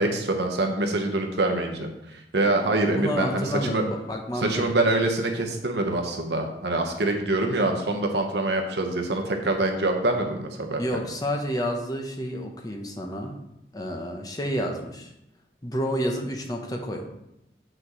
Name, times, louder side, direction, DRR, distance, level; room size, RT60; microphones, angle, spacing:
voice 1, 0.0-3.8 4.4-10.8, right 2 dB, 70° right, 3 dB, 1.0 m, -25 dB
voice 2, 2.9-4.7 10.8-13.3 13.7-15.1 15.6-17.0, equal, 20° left, 2 dB, 0.7 m, -29 dB
7.9 x 6.0 x 3.0 m, 0.85 s
head